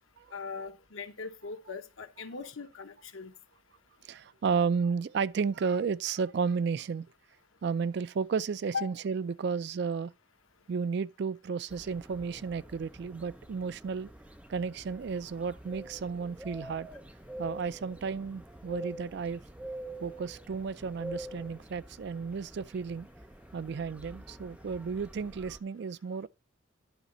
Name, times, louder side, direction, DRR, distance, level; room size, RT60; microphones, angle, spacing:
voice 1, 0.3-3.3 8.7-8.8, left 5 dB, 85° left, 1.1 m, -39 dB
voice 2, 4.0-7.1 7.6-10.1 10.7-14.1 14.5-16.9 17.4-19.4 20.0-23.1 23.5-26.3, right 5 dB, 55° right, 0.3 m, -33 dB
sound 1, 11.7-25.6, right 1 dB, 5° right, 0.6 m, -46 dB
11.0 x 4.0 x 5.4 m
head